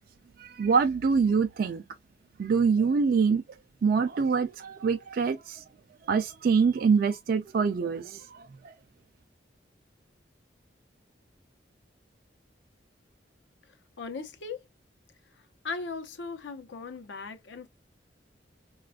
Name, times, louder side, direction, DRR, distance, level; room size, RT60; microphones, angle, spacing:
voice 1, 0.4-1.8 2.4-3.4 3.8-5.6 6.1-8.5, right 5 dB, 55° right, 0.3 m, -25 dB
voice 2, 14.0-14.6 15.6-17.7, left 4 dB, 85° left, 0.7 m, -38 dB
4.0 x 2.3 x 2.2 m
head